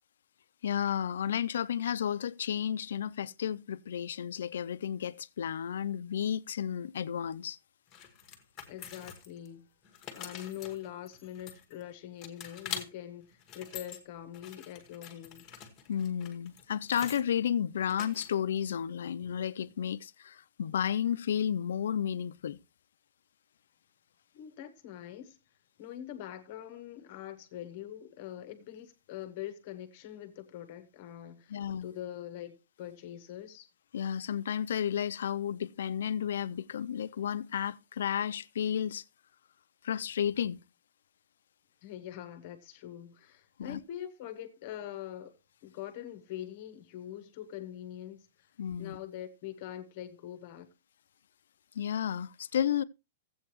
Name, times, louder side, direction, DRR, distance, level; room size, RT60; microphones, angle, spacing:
voice 1, 0.6-7.6 15.9-22.6 31.5-31.9 33.9-39.0 39.8-40.6 43.6-43.8 48.6-49.0 51.8-52.8, left 9 dB, 80° left, 0.5 m, -32 dB
sound 1, 7.9-9.5 9.8-11.8 12.2-12.9 13.3-14.0 14.3-17.2 17.9-18.6, left 8 dB, 15° left, 1.2 m, -45 dB
voice 2, 8.7-9.7 10.1-15.4 24.3-25.4 25.8-33.7 41.8-45.3 45.6-48.3 48.8-50.7, left 11 dB, 35° left, 1.0 m, -43 dB
15.0 x 7.9 x 3.0 m
supercardioid pair, 175°, 0 cm